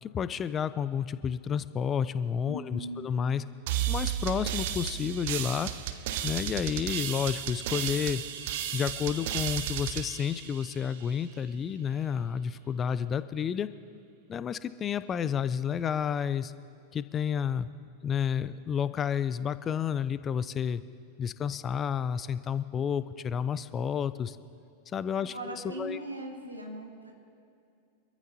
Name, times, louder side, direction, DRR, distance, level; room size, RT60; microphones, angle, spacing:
voice 1, 0.0-3.4 3.9-5.7 6.2-8.2 8.7-13.7 14.3-16.5 16.9-17.7 18.0-20.8 21.2-24.4 24.9-26.0, left 8 dB, 25° left, 14 dB, 0.5 m, -30 dB
voice 2, 2.5-3.1 25.1-27.1, right 1 dB, 85° right, -1 dB, 2.5 m, -39 dB
sound 1, 3.7-11.2, right 10 dB, 50° right, 0.8 m, -33 dB
25.5 x 14.0 x 2.8 m, 2.5 s
figure-of-eight pair, 90°, 0 cm